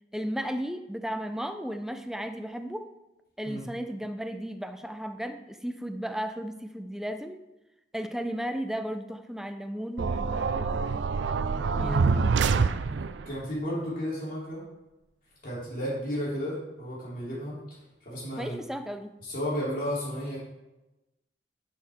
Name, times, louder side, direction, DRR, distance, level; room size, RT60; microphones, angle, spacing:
voice 1, 0.1-2.9 3.4-7.4 7.9-11.0 11.8-12.4 18.4-19.2, equal, 5° right, 8 dB, 0.5 m, -35 dB
sound 1, 10.0-13.3, right 4 dB, 90° right, 0.4 m, -26 dB
voice 2, 13.2-14.7 15.4-17.8 18.0-18.6 19.2-20.4, equal, 50° left, -7 dB, 3.2 m, -33 dB
10.5 x 6.5 x 3.6 m, 1.0 s
head